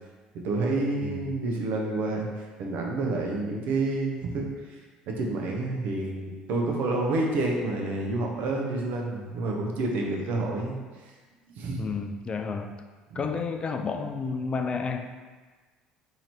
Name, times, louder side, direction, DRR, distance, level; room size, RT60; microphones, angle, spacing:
voice 1, 0.4-4.8 5.1-10.8 11.5-11.8 13.1-13.4, right 2 dB, 65° right, 0 dB, 0.7 m, -29 dB
voice 2, 11.8-12.8 13.1-15.1, left 5 dB, 35° left, 6 dB, 0.3 m, -31 dB
2.9 x 2.8 x 4.2 m, 1.4 s
supercardioid pair, 75°, 3 cm